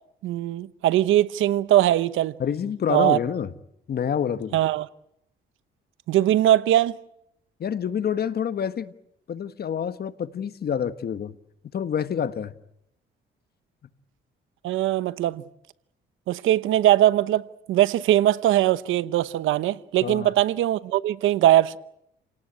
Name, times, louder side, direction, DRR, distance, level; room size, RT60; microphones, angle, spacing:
voice 1, 0.2-2.3 2.9-3.2 4.5-4.9 6.1-7.0 14.6-15.4 16.3-21.8, right 13 dB, 85° right, 0.9 m, -21 dB
voice 2, 2.4-3.5 3.9-4.6 7.6-8.9 9.3-11.3 11.7-12.5 20.0-20.3, left 8 dB, 50° left, 1.4 m, -27 dB
29.5 x 18.5 x 8.8 m
cardioid pair, 90°, 20 cm